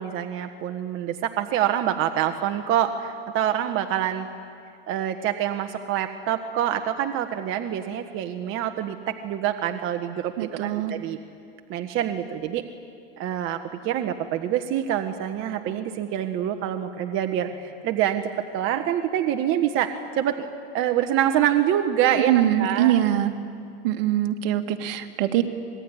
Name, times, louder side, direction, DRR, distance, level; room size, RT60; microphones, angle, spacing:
voice 1, 0.0-4.3 4.9-10.3 10.6-11.2 11.7-12.6 13.2-18.2 18.5-20.5 20.7-22.3 22.6-22.9, right 10 dB, 45° right, 6 dB, 1.5 m, -26 dB
voice 2, 10.4-10.9 22.3-23.3 23.8-25.4, right 12 dB, 70° right, 6 dB, 2.2 m, -23 dB
26.0 x 21.0 x 9.8 m, 2.4 s
supercardioid pair, 125°, 31 cm